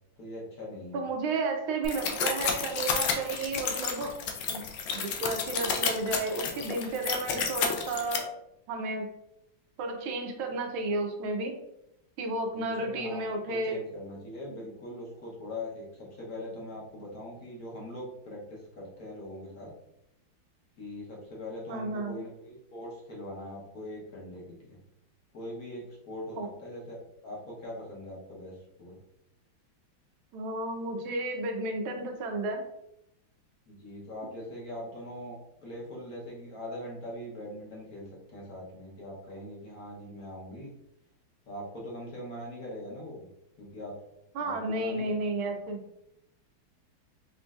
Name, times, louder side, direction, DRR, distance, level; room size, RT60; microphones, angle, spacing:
voice 1, 0.2-1.0 12.5-19.7 20.8-24.8 25.3-28.9 33.7-40.7 41.4-43.2 43.6-43.9 44.4-45.2 45.5-45.6, left 1 dB, 55° left, -4 dB, 1.3 m, -42 dB
voice 2, 0.9-4.1 4.5-4.6 4.9-8.3 8.7-9.1 9.8-11.5 12.2-13.8 21.7-22.2 26.4-26.5 30.3-32.6 44.3-45.8, right 2 dB, 90° right, 3 dB, 1.5 m, -32 dB
sound 1, 1.8-8.2, left 6 dB, 70° left, 1.1 m, -31 dB
5.2 x 2.5 x 2.4 m, 0.82 s
omnidirectional pair, 2.2 m